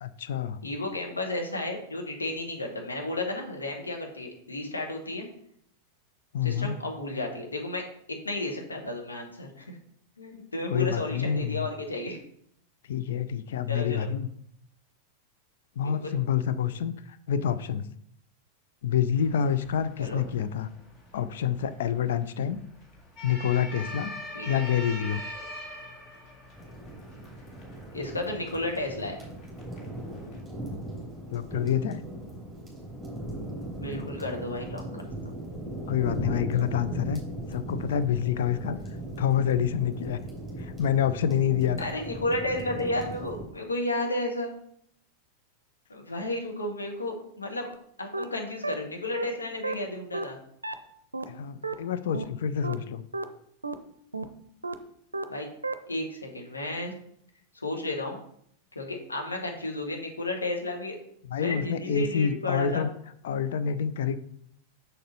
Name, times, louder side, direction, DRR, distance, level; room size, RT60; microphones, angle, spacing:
voice 1, 0.0-0.6 6.3-6.8 10.7-11.7 12.9-14.3 15.8-17.8 18.8-20.7 21.1-22.6 23.2-24.1 24.5-25.2 31.3-32.0 35.9-37.2 37.5-38.8 39.2-40.2 40.6-41.9 51.3-53.0 61.3-62.9 63.2-64.2, left 8 dB, 60° left, 11 dB, 0.5 m, -27 dB
voice 2, 0.6-5.3 6.4-7.8 8.2-9.8 10.2-12.2 13.7-14.1 15.8-16.1 20.0-20.2 24.3-24.7 27.9-29.1 33.8-35.0 41.8-44.5 45.9-47.7 48.0-50.4 55.3-55.5 55.9-56.9 57.5-58.2 58.7-61.0 61.4-62.9, left 2 dB, 75° left, 2 dB, 1.5 m, -33 dB
sound 1, 19.2-30.4, left 1 dB, 30° left, 1.9 m, -44 dB
sound 2, 26.6-43.4, right 1 dB, ahead, 2.9 m, -38 dB
sound 3, 47.7-47.8 48.1-48.2 48.6-48.7 49.1-49.2 49.6-49.7 50.1-50.2 50.6-50.7 51.1-51.2 51.6-51.7 52.1-52.2 52.6-52.7 53.1-53.2 53.6-53.7 54.1-54.2 54.6-54.7 55.1-55.2 55.6-55.7, right 2 dB, 80° right, 0.5 m, -31 dB
6.6 x 6.5 x 4.1 m, 0.68 s
figure-of-eight pair, 90°, 0 cm